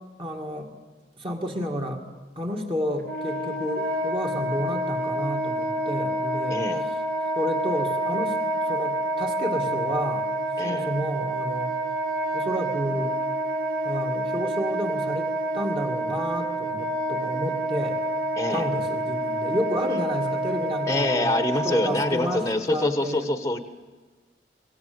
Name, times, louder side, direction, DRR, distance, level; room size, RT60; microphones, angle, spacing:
voice 1, 0.2-0.7 1.2-2.0 2.4-6.6 7.4-8.4 8.7-10.3 10.6-11.7 12.3-13.2 13.8-18.0 18.5-21.3 21.6-23.3, equal, 30° right, 1 dB, 2.2 m, -30 dB
Wind instrument woodwind instrument, 3.0-22.5, right 1 dB, 55° right, 2.4 m, -28 dB
voice 2, 6.5-6.9 10.6-10.9 18.4-18.7 20.9-23.6, left 1 dB, 20° left, 8 dB, 1.2 m, -26 dB
24.5 x 17.0 x 8.0 m, 1.3 s
head